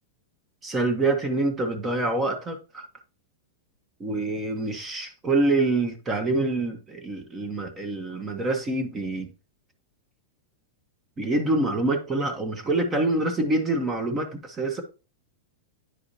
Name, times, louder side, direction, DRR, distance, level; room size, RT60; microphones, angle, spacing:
voice 1, 0.6-2.8 4.0-9.3 11.2-14.8, right 2 dB, 20° right, 1.2 m, -26 dB
9.9 x 4.8 x 2.7 m
supercardioid pair, 145°, 0 cm